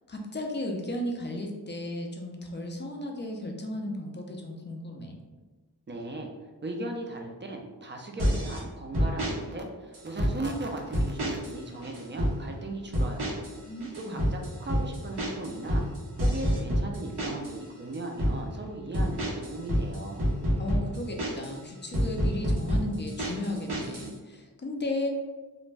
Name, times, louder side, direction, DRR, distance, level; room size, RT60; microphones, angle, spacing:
voice 1, 0.1-5.2 13.6-14.3 20.6-25.1, left 1 dB, 30° left, 1 dB, 0.4 m, -35 dB
voice 2, 5.9-6.3 6.6-13.5 13.9-15.8 16.2-20.3, right 2 dB, 30° right, 1 dB, 0.4 m, -37 dB
sound 1, 8.2-8.6 8.9-9.3 9.9-10.6 10.9-11.5 11.8-12.3 12.9-13.5 13.8-17.6 17.9-18.4 18.9-21.5 21.9-24.1, equal, 80° right, 1.0 m, -27 dB
2.5 x 2.1 x 3.2 m, 1.3 s
wide cardioid pair, 80°, 39 cm